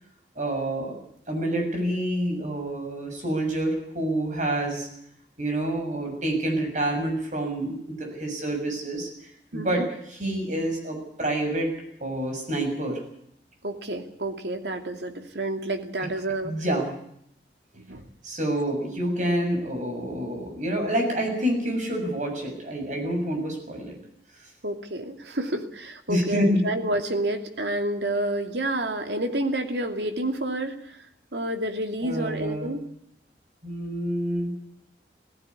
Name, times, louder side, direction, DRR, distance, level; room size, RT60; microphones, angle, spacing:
voice 1, 0.4-1.0 1.3-4.9 5.4-9.8 10.1-11.7 12.0-13.0 16.4-16.9 18.2-24.0 26.1-26.6 32.0-32.7 33.6-34.5, right 1 dB, 45° right, 3 dB, 7.0 m, -27 dB
voice 2, 9.5-9.9 13.6-16.6 17.7-18.0 24.6-31.0 31.3-32.8, right 1 dB, 75° right, 5 dB, 2.6 m, -29 dB
18.0 x 15.0 x 9.7 m, 0.72 s
head